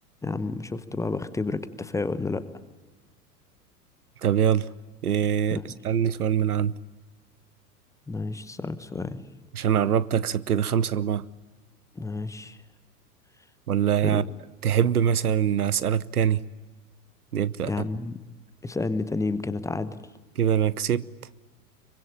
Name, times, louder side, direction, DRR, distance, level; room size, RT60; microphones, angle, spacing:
voice 1, 0.2-2.4 5.5-5.6 8.1-9.2 11.9-12.6 14.0-14.2 17.6-18.2 18.6-20.0, left 3 dB, 5° left, 1.0 m, -30 dB
voice 2, 4.2-4.7 5.0-6.7 9.5-11.3 13.7-14.2 14.6-16.4 17.3-17.7 20.4-21.0, right 9 dB, 70° right, 0.9 m, -23 dB
25.5 x 24.0 x 8.9 m
figure-of-eight pair, 95°, 47 cm